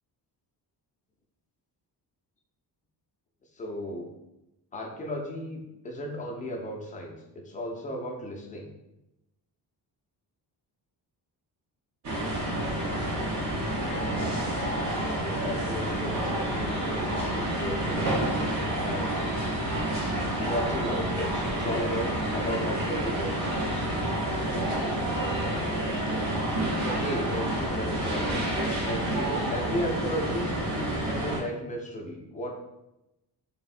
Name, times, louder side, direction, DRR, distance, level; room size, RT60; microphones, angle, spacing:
voice 1, 3.6-4.1 4.7-8.7 14.9-18.2 18.8-19.3 20.4-23.6 24.5-25.0 25.5-26.3 26.8-28.4 28.8-30.6 30.9-32.5, equal, 20° left, 0 dB, 0.3 m, -35 dB
sound 1, 12.0-31.4, right 1 dB, 40° right, 0.6 m, -29 dB
3.4 x 2.0 x 2.4 m, 0.92 s
wide cardioid pair, 160°, 42 cm